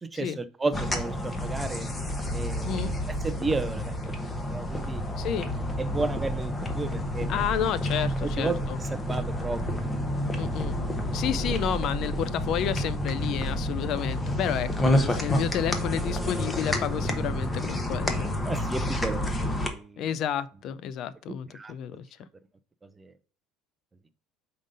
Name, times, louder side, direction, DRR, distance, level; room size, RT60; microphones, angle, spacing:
voice 1, 0.0-1.9 2.3-5.0 5.8-7.5 8.2-8.6 8.9-10.4 11.4-11.5 18.4-20.0 21.5-21.7 22.8-23.1, right 3 dB, 15° right, 0.5 m, -33 dB
sound 1, 0.7-19.7, left 1 dB, 15° left, 1.0 m, -29 dB
voice 2, 5.2-5.5 7.3-8.8 10.3-10.8 11.0-18.5 20.0-22.1, left 9 dB, 55° left, 0.4 m, -31 dB
5.2 x 3.8 x 5.2 m
supercardioid pair, 115°, 0 cm